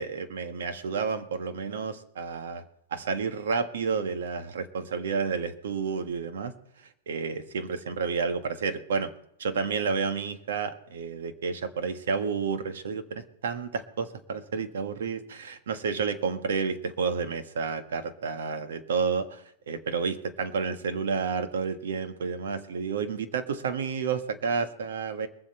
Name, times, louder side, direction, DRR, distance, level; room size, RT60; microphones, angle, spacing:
voice 1, 0.0-2.6 2.9-6.5 7.1-9.1 9.4-25.3, right 5 dB, 90° right, 9 dB, 1.4 m, -30 dB
23.0 x 7.8 x 4.4 m, 0.75 s
supercardioid pair, 150°, 0 cm